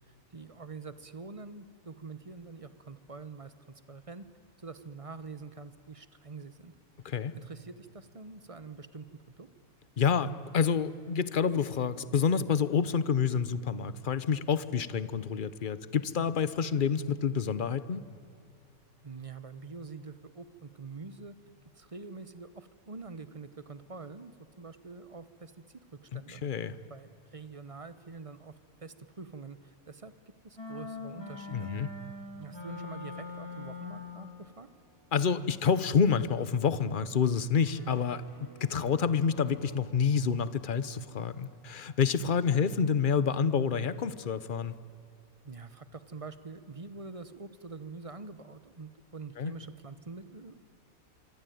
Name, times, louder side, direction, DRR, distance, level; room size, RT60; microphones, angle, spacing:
voice 1, 0.1-4.2 4.6-6.7 7.3-9.5 19.0-21.3 21.7-26.4 26.9-30.1 30.4-31.7 32.4-34.7 45.4-50.6, right 4 dB, 25° right, 13 dB, 0.9 m, -45 dB
voice 2, 10.0-18.0 26.1-26.8 31.5-31.9 35.1-38.2 38.6-44.7 49.4-49.5, left 6 dB, 40° left, 15 dB, 0.9 m, -28 dB
sound 1, 30.6-34.4, left 3 dB, 15° left, 3.8 m, -42 dB
sound 2, 33.4-43.5, right 1 dB, 10° right, 7.0 m, -60 dB
25.5 x 24.5 x 9.3 m, 2.5 s
omnidirectional pair, 1.6 m